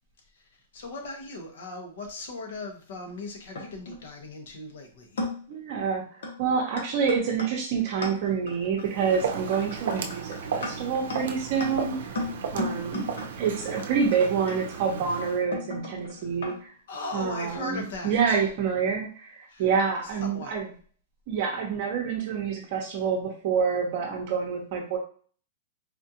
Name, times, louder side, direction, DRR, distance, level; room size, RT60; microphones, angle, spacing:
voice 1, 0.7-5.3 16.1-16.3 16.9-18.5 19.5-19.7 20.0-20.5, left 2 dB, 70° left, 2 dB, 1.0 m, -38 dB
sound 1, 3.1-4.0 4.7-4.8 5.2-5.6 6.2-6.4 6.8-16.6, left 2 dB, 85° left, 1.2 m, -36 dB
voice 2, 5.5-12.2 12.5-13.1 13.4-16.7 17.1-20.7 21.3-25.0, right 6 dB, 40° right, 0 dB, 0.8 m, -27 dB
Walk footsteps, 8.8-15.4, right 6 dB, 75° right, 0.5 m, -35 dB
4.2 x 2.5 x 2.8 m, 0.42 s
supercardioid pair, 165°, 0 cm